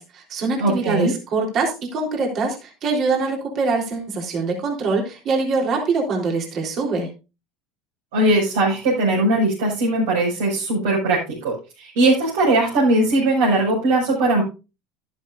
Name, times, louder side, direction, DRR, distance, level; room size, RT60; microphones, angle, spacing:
voice 1, 0.0-7.1, right 4 dB, 45° right, 1 dB, 3.8 m, -24 dB
voice 2, 0.6-1.1 8.1-14.4, right 2 dB, 75° right, -5 dB, 6.0 m, -19 dB
11.5 x 11.5 x 2.6 m, 0.30 s
hypercardioid pair, 80°, 0 cm